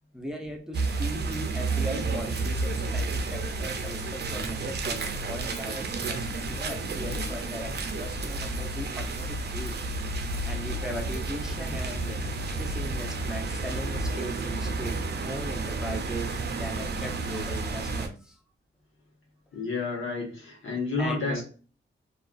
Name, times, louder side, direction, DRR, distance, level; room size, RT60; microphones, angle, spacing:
voice 1, 0.1-9.8 10.4-12.2 12.6-18.4 21.0-21.4, equal, 5° right, 1 dB, 0.6 m, -38 dB
sound 1, 0.7-18.1, right 3 dB, 55° right, 0.5 m, -31 dB
voice 2, 19.5-21.4, left 3 dB, 75° left, -1 dB, 1.0 m, -30 dB
2.4 x 2.3 x 2.3 m, 0.38 s
cardioid pair, 65°, 21 cm